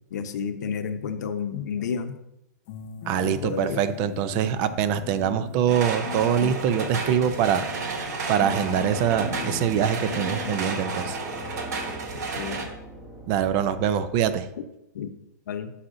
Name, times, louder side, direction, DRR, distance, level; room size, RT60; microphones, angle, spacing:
voice 1, 0.1-2.2 3.2-3.8 12.3-12.7 14.9-15.1 15.5-15.7, left 6 dB, 75° left, 8 dB, 0.8 m, -31 dB
sound 1, 2.7-10.7, left 9 dB, 45° left, 0.5 m, -38 dB
voice 2, 3.1-7.7 8.3-11.2 13.3-14.5, right 9 dB, 40° right, 13 dB, 0.5 m, -24 dB
sound 2, 5.7-12.7, right 4 dB, 70° right, 1.3 m, -32 dB
sound 3, 8.4-14.3, equal, 15° right, 1.1 m, -42 dB
9.9 x 5.7 x 2.6 m, 0.88 s
hypercardioid pair, 140°, 9 cm